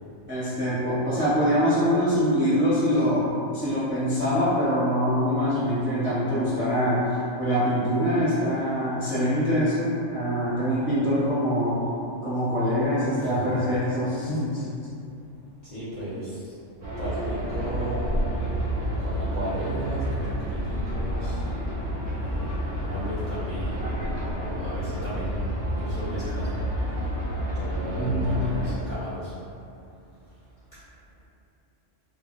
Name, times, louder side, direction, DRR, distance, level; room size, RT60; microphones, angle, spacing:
voice 1, 0.3-11.8 12.2-14.7 28.0-28.4, equal, 15° right, -12 dB, 0.5 m, -24 dB
voice 2, 13.2-13.5 15.6-16.5 17.0-18.1 19.0-21.4 22.2-23.9 24.3-25.5 25.8-26.6 27.5-29.3, equal, 50° left, -12 dB, 0.6 m, -35 dB
sound 1, 16.8-28.7, equal, 55° right, 0.7 m, -29 dB
2.1 x 2.1 x 3.6 m, 2.6 s
omnidirectional pair, 1.3 m